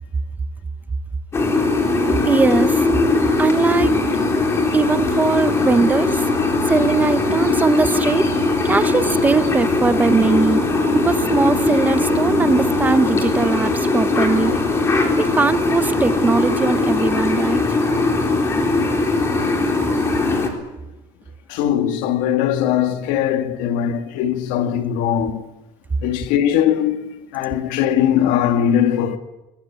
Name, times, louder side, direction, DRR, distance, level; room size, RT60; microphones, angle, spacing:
sound 1, 1.3-20.5, left 3 dB, 20° left, 3.9 m, -20 dB
voice 1, 2.3-2.8 3.4-4.0 4.7-6.2 6.7-8.3 8.6-14.6 15.2-17.6, right 4 dB, 15° right, 0.8 m, -20 dB
voice 2, 21.5-25.5 26.0-29.2, left 10 dB, 80° left, 2.4 m, -20 dB
22.0 x 21.5 x 9.6 m
cardioid pair, 180°, 13 cm